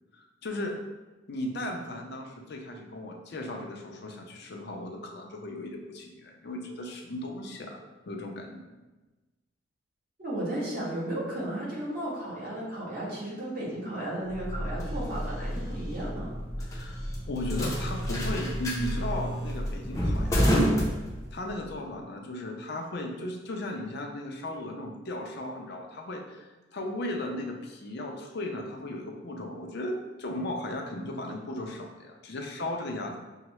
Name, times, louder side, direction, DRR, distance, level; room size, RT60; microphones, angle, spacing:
voice 1, 0.1-0.8 1.3-7.8 8.1-8.6 16.7-17.0 17.3-20.7 21.3-33.2, left 1 dB, 60° left, 2 dB, 0.5 m, -36 dB
voice 2, 10.2-16.3, right 1 dB, 50° right, -7 dB, 1.5 m, -34 dB
sound 1, 14.3-21.6, equal, 15° left, 0.6 m, -29 dB
5.5 x 2.1 x 3.0 m, 1.2 s
head